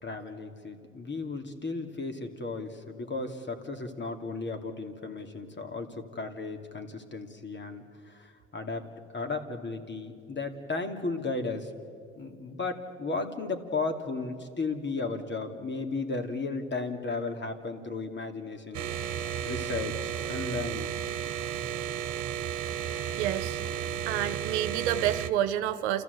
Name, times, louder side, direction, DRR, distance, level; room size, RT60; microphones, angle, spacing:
voice 1, 0.0-11.7 12.2-18.9 19.4-20.9, left 3 dB, 35° left, 5 dB, 2.7 m, -35 dB
sound 1, 18.7-25.3, right 9 dB, 65° right, 1.2 m, -33 dB
voice 2, 23.2-23.6 24.1-26.0, right 11 dB, 85° right, 11 dB, 1.0 m, -29 dB
29.0 x 14.0 x 8.2 m, 2.3 s
hypercardioid pair, 65°, 33 cm